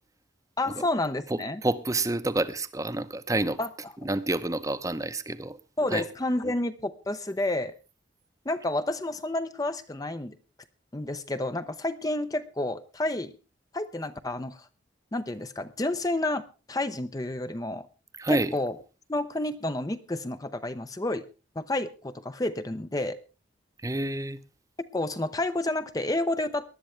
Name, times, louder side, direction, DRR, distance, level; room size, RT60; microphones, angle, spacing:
voice 1, 0.6-1.6 3.6-3.9 5.8-7.7 8.5-10.4 10.9-13.3 13.7-14.7 15.1-17.9 18.3-18.8 19.1-21.3 21.6-23.2 24.9-26.8, left 1 dB, 20° left, 11 dB, 0.6 m, -30 dB
voice 2, 1.6-3.6 4.0-5.6 5.9-6.0 18.2-18.5 23.8-24.4, right 2 dB, 20° right, 13 dB, 0.7 m, -28 dB
19.5 x 11.5 x 3.3 m, 0.31 s
head